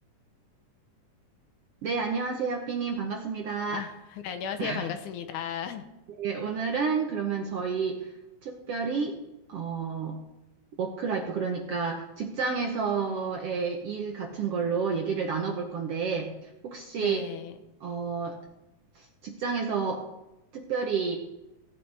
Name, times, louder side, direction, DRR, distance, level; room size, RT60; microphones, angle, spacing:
voice 1, 1.8-3.8 4.6-4.9 6.2-8.1 8.4-9.1 9.5-10.2 10.8-17.2 17.8-18.4 18.9-20.0 20.5-21.2, right 5 dB, 65° right, 2 dB, 1.5 m, -30 dB
voice 2, 3.7-5.8 17.0-17.5, left 8 dB, 75° left, 7 dB, 2.1 m, -35 dB
17.0 x 9.2 x 3.4 m, 0.98 s
omnidirectional pair, 3.8 m